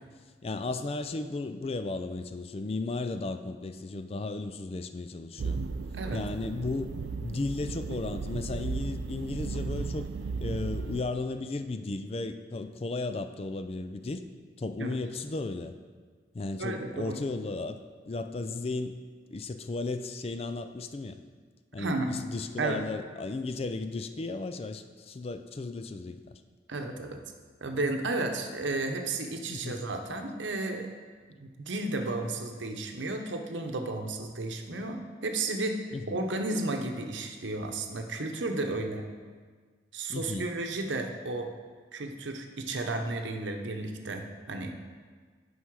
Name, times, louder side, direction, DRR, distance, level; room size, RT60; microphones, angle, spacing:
voice 1, 0.4-5.6 6.1-6.9 7.2-10.1 10.4-14.3 14.6-15.7 16.3-19.0 19.3-21.2 21.7-26.4 29.5-29.8 35.9-36.2 40.1-40.5, left 3 dB, 30° left, 9 dB, 0.4 m, -35 dB
sound 1, 5.4-11.0, right 4 dB, 70° right, 0.4 m, -35 dB
voice 2, 16.6-17.2 21.8-22.2 22.6-22.8 26.7-27.2 27.6-30.9 31.4-39.1 39.9-41.5 41.9-44.7, right 2 dB, 90° right, 5 dB, 0.9 m, -33 dB
9.6 x 5.6 x 4.7 m, 1.5 s
head